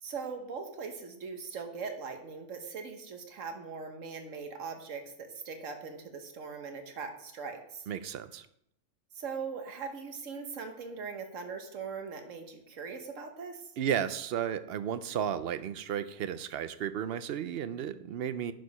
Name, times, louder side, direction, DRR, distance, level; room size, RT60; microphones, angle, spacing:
voice 1, 0.0-7.8 9.1-13.7, right 5 dB, 80° right, 6 dB, 1.5 m, -40 dB
voice 2, 7.9-8.5 13.8-18.5, right 9 dB, 60° right, 13 dB, 0.7 m, -33 dB
10.5 x 4.7 x 5.5 m, 0.76 s
omnidirectional pair, 1.3 m